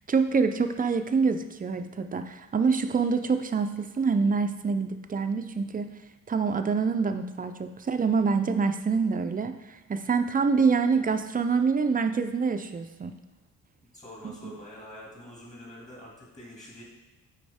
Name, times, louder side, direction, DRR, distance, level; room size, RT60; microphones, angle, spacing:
voice 1, 0.1-5.9 6.3-13.1, right 5 dB, 25° right, 8 dB, 0.4 m, -26 dB
voice 2, 13.8-16.8, left 1 dB, 20° left, -4 dB, 2.4 m, -46 dB
9.3 x 4.2 x 3.5 m, 1.1 s
cardioid pair, 115°, 33 cm